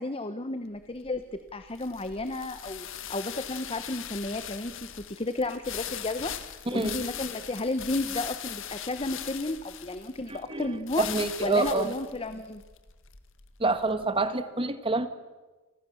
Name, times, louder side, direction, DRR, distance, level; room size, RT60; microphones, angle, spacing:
voice 1, 0.0-11.0 11.4-12.6, left 2 dB, 25° left, 10 dB, 1.0 m, -33 dB
sound 1, 0.8-14.0, left 10 dB, 60° left, 1.9 m, -40 dB
voice 2, 6.7-7.0 10.3-11.9 13.6-15.1, right 3 dB, 25° right, 11 dB, 1.7 m, -27 dB
30.0 x 25.0 x 7.2 m, 1.2 s
head